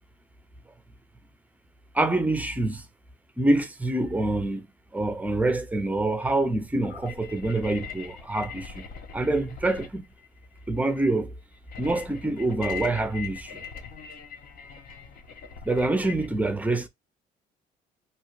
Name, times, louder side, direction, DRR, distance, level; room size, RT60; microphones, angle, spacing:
voice 1, 1.9-2.9 3.4-4.7 4.9-8.8 9.1-10.0 10.7-11.3 11.8-13.6 15.6-16.9, right 2 dB, 10° right, 0.5 m, -26 dB
sound 1, 6.8-16.3, left 7 dB, 55° left, 0.7 m, -41 dB
2.8 x 2.3 x 2.9 m
cardioid pair, 110°, 17 cm